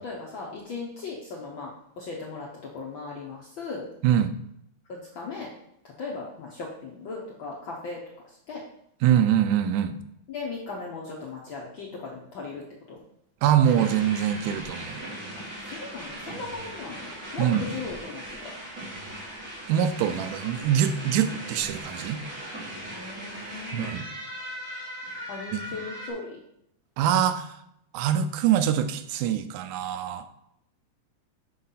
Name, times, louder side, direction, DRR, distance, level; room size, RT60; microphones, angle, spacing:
voice 1, 0.0-3.9 4.9-5.5 5.8-8.6 10.3-13.0 15.3-18.5 22.9-23.9 25.3-26.4, left 4 dB, 75° left, -3 dB, 1.1 m, -38 dB
voice 2, 9.0-10.0 13.4-15.0 17.4-17.6 19.7-22.2 23.7-24.1 25.5-25.6 27.0-27.5 27.9-30.3, right 10 dB, 85° right, 10 dB, 2.1 m, -24 dB
sound 1, 13.6-26.1, right 1 dB, 25° right, 2.7 m, -38 dB
6.4 x 3.8 x 5.6 m, 0.77 s
omnidirectional pair, 3.5 m